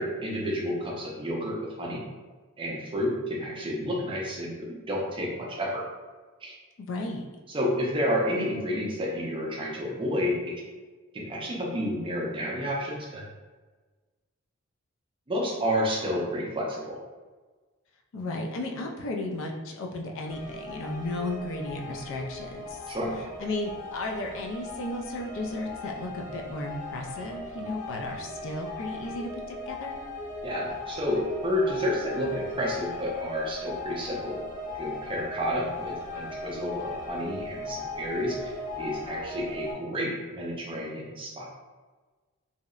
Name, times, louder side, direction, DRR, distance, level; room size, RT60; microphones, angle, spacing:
voice 1, 0.0-2.0 2.6-5.8 6.4-6.6 7.5-10.5 11.1-13.2 15.3-17.0 22.9-23.1 30.4-34.4 34.8-41.5, equal, 25° right, -2 dB, 0.5 m, -30 dB
voice 2, 6.8-7.3 18.1-22.8 23.4-30.0, left 2 dB, 60° left, 1 dB, 0.4 m, -34 dB
sound 1, 20.3-39.7, left 2 dB, 85° left, 0.7 m, -38 dB
2.7 x 2.0 x 2.3 m, 1.3 s
head